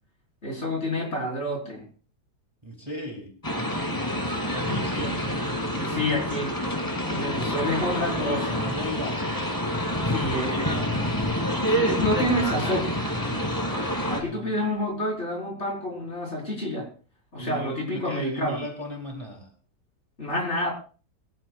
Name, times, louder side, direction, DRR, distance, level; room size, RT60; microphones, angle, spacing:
voice 1, 0.4-1.8 5.0-5.2 5.7-6.5 7.1-8.6 9.9-10.8 11.6-12.9 14.1-16.9 17.3-18.6 20.2-20.7, equal, 40° left, -1 dB, 5.5 m, -29 dB
voice 2, 2.6-3.3 4.5-5.5 5.7-6.2 8.0-9.6 10.0-10.5 14.1-14.6 17.4-19.5, left 1 dB, 15° right, 2 dB, 3.1 m, -37 dB
sound 1, 3.4-14.2, equal, 10° left, 2.8 m, -27 dB
22.5 x 14.5 x 2.5 m, 0.38 s
omnidirectional pair, 1.8 m